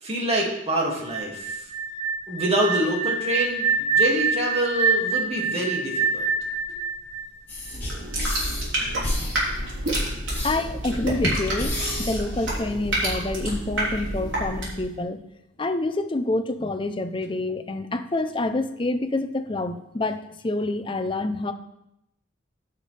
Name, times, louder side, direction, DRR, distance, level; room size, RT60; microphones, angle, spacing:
voice 1, 0.0-1.7 2.3-6.3, right 1 dB, 30° right, -2 dB, 2.1 m, -26 dB
sound 1, 1.0-7.9, right 4 dB, 15° right, 1.2 m, -26 dB
sound 2, 7.5-13.1, left 1 dB, 10° left, 2.5 m, -33 dB
sound 3, 7.6-14.9, right 1 dB, 85° right, 3.6 m, -29 dB
voice 2, 10.4-15.2 15.6-20.2 20.4-21.5, left 2 dB, 25° left, 9 dB, 0.5 m, -27 dB
15.0 x 5.8 x 3.3 m, 0.84 s
head